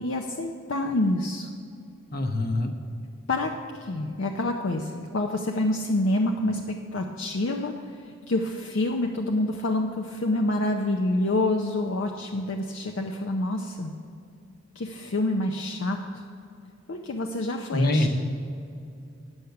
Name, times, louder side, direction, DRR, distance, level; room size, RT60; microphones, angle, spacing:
voice 1, 0.0-1.5 3.3-3.5 3.8-6.6 6.9-7.7 8.3-13.9 14.8-16.0 16.9-18.1, left 2 dB, 60° left, 2 dB, 0.5 m, -27 dB
voice 2, 2.1-2.7 17.7-18.1, left 1 dB, 45° left, 5 dB, 0.9 m, -24 dB
9.8 x 8.0 x 5.7 m, 2.6 s
head